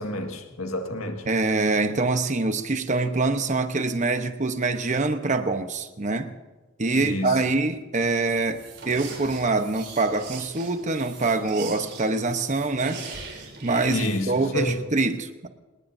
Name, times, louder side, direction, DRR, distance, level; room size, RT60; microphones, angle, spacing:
voice 1, 0.0-1.3 7.0-7.3 13.9-14.8, left 1 dB, 90° left, 3 dB, 1.9 m, -29 dB
voice 2, 1.2-6.3 6.8-13.0 13.6-15.5, right 3 dB, 35° right, 8 dB, 1.0 m, -25 dB
sound 1, 8.2-14.5, right 4 dB, 50° right, 3.6 m, -41 dB
27.0 x 19.5 x 2.7 m, 1.2 s
head